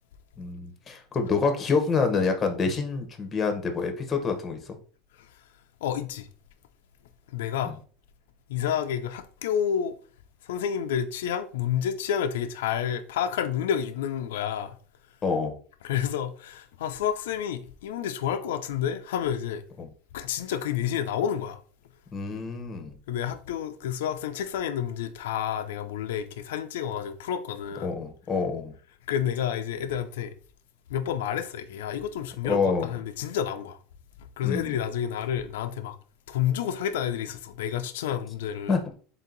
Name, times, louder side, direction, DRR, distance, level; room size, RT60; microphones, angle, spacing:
voice 1, 0.4-4.7 7.6-7.7 15.2-15.5 19.8-19.9 22.1-22.9 27.8-28.7 32.5-33.0 34.4-34.8 38.7-38.8, left 4 dB, 20° left, 0.8 m, -27 dB
voice 2, 5.8-6.3 7.3-7.7 8.5-10.0 10.4-14.8 15.8-19.6 20.1-21.6 23.1-27.9 29.1-30.3 30.9-33.8 34.4-36.0 36.3-38.8, left 9 dB, 90° left, 0.4 m, -29 dB
3.8 x 2.8 x 3.8 m
supercardioid pair, 140°, 0 cm